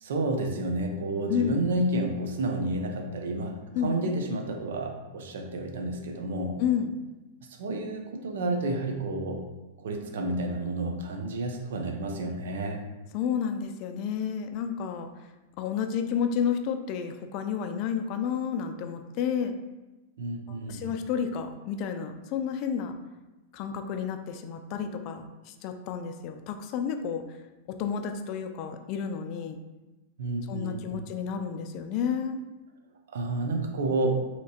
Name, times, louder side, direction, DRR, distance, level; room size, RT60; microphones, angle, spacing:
voice 1, 0.0-6.6 7.6-9.4 9.8-12.8 20.2-20.9 30.2-31.0 33.1-34.2, right 2 dB, 75° right, 4 dB, 0.5 m, -30 dB
voice 2, 1.3-1.6 3.7-4.1 6.6-7.0 13.1-15.1 15.6-19.5 20.5-23.0 23.5-27.2 27.8-29.6 30.5-32.4, left 7 dB, 45° left, 7 dB, 0.3 m, -31 dB
3.1 x 2.8 x 2.8 m, 1.1 s
hypercardioid pair, 135°, 0 cm